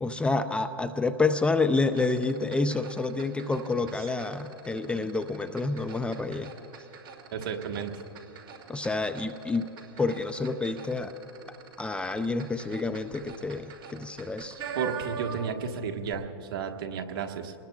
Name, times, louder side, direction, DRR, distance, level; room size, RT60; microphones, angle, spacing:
voice 1, 0.0-6.5 8.7-9.7 10.0-11.1 11.8-14.6, left 3 dB, 10° left, 9 dB, 0.4 m, -28 dB
sound 1, 1.9-15.7 16.0-16.1, right 7 dB, 35° right, 2.8 m, -44 dB
voice 2, 7.3-7.9 14.7-17.5, right 6 dB, 60° right, 5 dB, 1.4 m, -32 dB
27.0 x 20.0 x 2.3 m, 2.9 s
hypercardioid pair, 125°, 13 cm